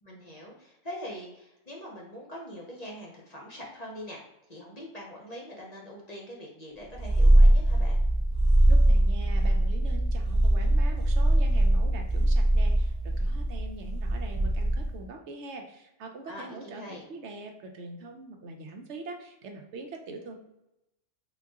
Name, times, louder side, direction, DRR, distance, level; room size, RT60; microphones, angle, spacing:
voice 1, 0.0-4.2 4.5-8.0 16.3-17.0, equal, 40° left, -3 dB, 0.7 m, -43 dB
Purr, 6.9-15.0, right 1 dB, 5° left, 1.0 m, -22 dB
voice 2, 8.7-20.4, right 3 dB, 70° right, 3 dB, 0.9 m, -43 dB
4.0 x 2.2 x 3.5 m, 0.87 s
omnidirectional pair, 1.3 m